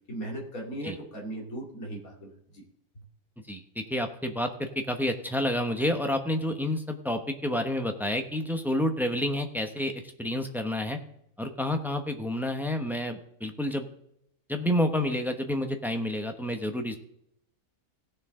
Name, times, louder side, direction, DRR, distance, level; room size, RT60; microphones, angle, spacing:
voice 1, 0.1-2.6, right 1 dB, 65° left, -2 dB, 2.9 m, -38 dB
voice 2, 3.5-11.0 11.4-13.9 14.5-17.0, left 1 dB, ahead, 5 dB, 0.7 m, -29 dB
17.0 x 6.4 x 3.7 m, 0.76 s
omnidirectional pair, 1.6 m